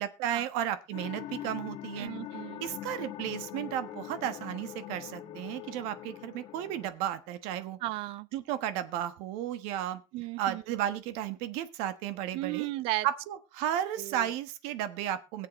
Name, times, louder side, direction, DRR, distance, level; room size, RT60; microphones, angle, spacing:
voice 1, 0.0-2.1 2.6-7.8 8.3-10.0 10.4-12.7 13.0-15.5, right 11 dB, 80° right, 1.3 m, -33 dB
sound 1, 0.9-6.9, left 12 dB, 65° left, 1.6 m, -42 dB
voice 2, 2.0-2.7 7.8-8.3 10.1-10.8 12.3-13.1 14.0-14.3, right 17 dB, 60° right, 0.6 m, -35 dB
22.0 x 7.5 x 3.1 m
cardioid pair, 160°, 11 cm